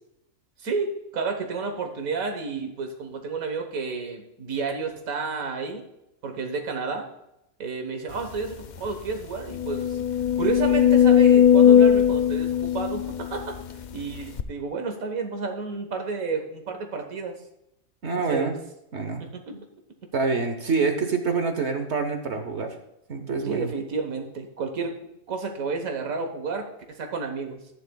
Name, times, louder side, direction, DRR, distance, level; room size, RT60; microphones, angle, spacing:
voice 1, 0.6-5.9 6.2-7.1 7.6-10.0 10.4-13.6 13.9-17.4 18.1-18.6 19.2-19.5 23.4-24.9 25.3-27.6, right 4 dB, 85° right, 4 dB, 1.7 m, -31 dB
sound 1, 8.4-8.5 8.8-8.9 9.5-13.7 14.4-14.5, left 9 dB, 70° left, 0.4 m, -18 dB
voice 2, 18.0-18.6 18.9-19.3 19.5-19.6 20.1-22.7 23.1-23.7, right 4 dB, 55° right, 6 dB, 1.2 m, -26 dB
14.5 x 9.7 x 2.3 m, 0.83 s
omnidirectional pair, 1.4 m